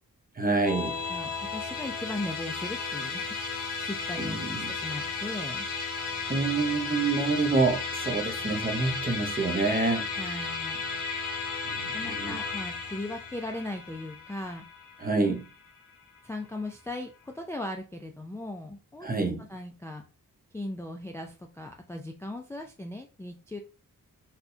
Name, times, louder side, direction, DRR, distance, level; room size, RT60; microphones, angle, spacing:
voice 1, 0.4-1.0 4.2-4.7 6.3-10.1 11.7-12.4 15.0-15.5 19.0-19.5, right 3 dB, 25° right, 4 dB, 0.7 m, -27 dB
Musical instrument, 0.6-16.2, left 4 dB, 65° left, 1.1 m, -34 dB
voice 2, 1.1-4.4 4.7-5.7 10.2-10.8 11.9-14.6 16.2-19.1 19.4-20.0 20.5-23.6, left 1 dB, 10° left, 3 dB, 0.3 m, -38 dB
4.2 x 2.3 x 2.6 m, 0.34 s
wide cardioid pair, 120°, 35 cm